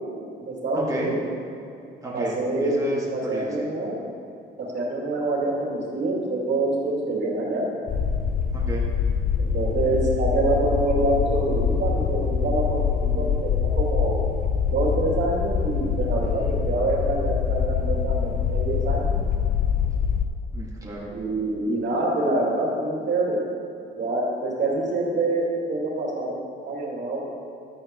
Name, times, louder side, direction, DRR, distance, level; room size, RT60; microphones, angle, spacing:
voice 1, 0.4-1.2 2.1-2.8 3.1-4.0 4.6-7.7 9.4-14.2 14.7-19.2 21.1-23.4 23.9-27.2, right 2 dB, 65° right, -4 dB, 2.5 m, -26 dB
voice 2, 2.0-2.3 2.6-3.7 8.5-8.8 16.4-16.6 20.5-21.1, right 1 dB, 15° right, -5 dB, 1.8 m, -32 dB
sound 1, 7.9-20.2, left 7 dB, 45° left, 0.6 m, -24 dB
12.5 x 8.8 x 3.0 m, 2.6 s
cardioid pair, 90°, 20 cm